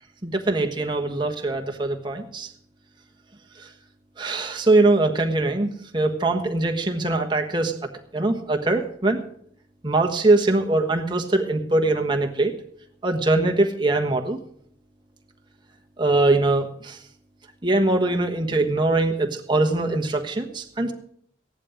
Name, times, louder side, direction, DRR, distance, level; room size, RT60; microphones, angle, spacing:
voice 1, 0.2-2.5 3.6-3.7 4.2-7.8 8.1-9.2 9.8-12.5 13.0-14.4 16.0-17.0 17.6-20.9, right 2 dB, 25° right, 3 dB, 1.2 m, -22 dB
15.5 x 11.0 x 5.0 m, 0.66 s
head